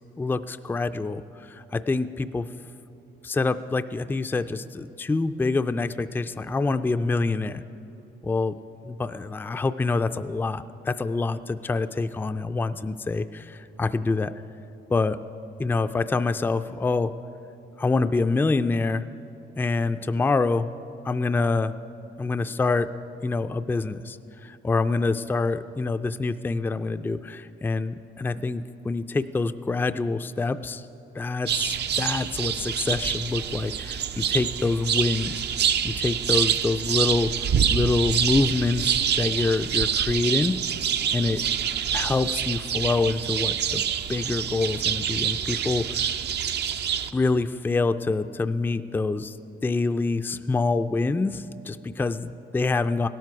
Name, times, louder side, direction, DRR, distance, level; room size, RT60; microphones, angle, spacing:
voice 1, 0.2-2.5 3.2-7.6 8.2-8.6 8.8-14.3 14.9-15.2 15.6-17.1 17.8-19.1 19.6-20.7 21.0-21.7 22.2-22.9 23.2-30.9 31.1-35.4 35.8-40.6 41.1-41.4 41.9-43.8 44.1-46.1 47.1-49.4 49.6-53.1, left 3 dB, 10° left, 11 dB, 0.3 m, -26 dB
sound 1, 31.5-47.1, right 8 dB, 60° right, 0.5 m, -26 dB
17.0 x 12.5 x 4.7 m, 2.8 s
cardioid pair, 90°, 20 cm